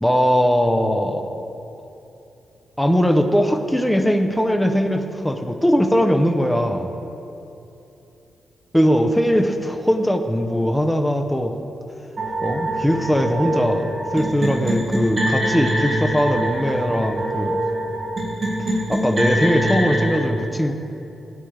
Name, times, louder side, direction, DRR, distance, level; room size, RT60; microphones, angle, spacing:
voice 1, 0.0-1.4 2.8-6.9 8.7-11.5 12.4-17.6 18.9-20.7, equal, 5° left, 5 dB, 0.6 m, -20 dB
sound 1, 12.2-20.2, right 1 dB, 30° right, 1.7 m, -24 dB
14.5 x 9.2 x 3.3 m, 2.9 s
wide cardioid pair, 145°, 0 cm